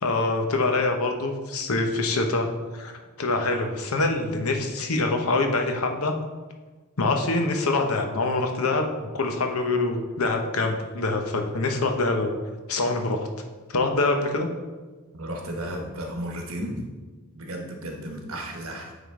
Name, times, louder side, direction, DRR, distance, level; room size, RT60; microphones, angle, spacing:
voice 1, 0.0-2.5 2.7-6.2 7.0-12.3 12.7-13.3 13.7-14.5, left 2 dB, 90° left, 4 dB, 0.8 m, -25 dB
voice 2, 15.1-16.8 17.3-18.9, right 1 dB, 75° right, 1 dB, 1.2 m, -34 dB
9.1 x 3.7 x 3.7 m, 1.3 s
head